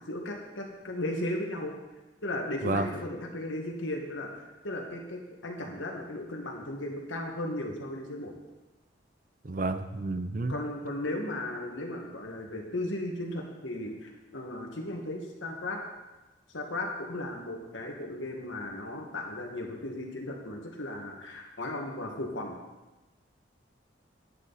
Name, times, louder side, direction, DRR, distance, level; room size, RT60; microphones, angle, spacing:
voice 1, 0.0-1.7 2.2-8.3 10.5-15.8 16.5-22.6, left 1 dB, 90° left, 1 dB, 1.9 m, -36 dB
voice 2, 9.4-10.5, right 2 dB, 45° right, 10 dB, 0.6 m, -30 dB
11.0 x 10.0 x 4.2 m, 1.1 s
head